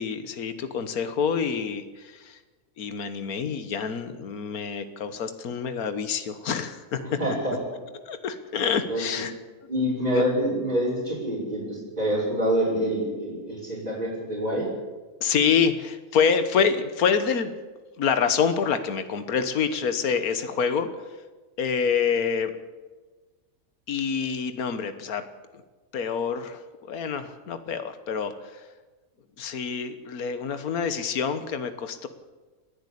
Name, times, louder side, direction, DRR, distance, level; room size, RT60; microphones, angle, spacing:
voice 1, 0.0-2.4 2.8-7.2 8.1-9.3 10.1-10.2 15.2-17.5 18.0-21.1 21.6-22.5 23.9-25.2 25.9-28.6 29.4-32.1, left 6 dB, 75° left, 10 dB, 1.7 m, -27 dB
voice 2, 7.0-7.6 8.9-9.0 9.7-14.7, right 1 dB, 30° right, -8 dB, 5.9 m, -26 dB
29.5 x 10.5 x 8.5 m, 1.3 s
omnidirectional pair, 1.6 m